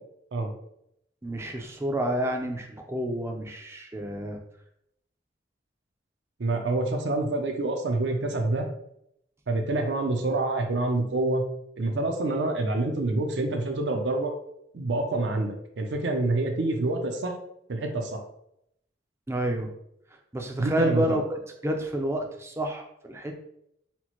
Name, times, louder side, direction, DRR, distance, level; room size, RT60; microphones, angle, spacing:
voice 1, 1.2-4.4 19.3-19.7 20.3-23.4, right 1 dB, 15° right, 3 dB, 0.4 m, -29 dB
voice 2, 6.4-8.7 9.5-11.5 11.8-14.3 14.7-17.3 17.7-18.2 20.6-21.2, right 2 dB, 75° right, 4 dB, 0.6 m, -27 dB
4.3 x 2.0 x 2.9 m, 0.76 s
head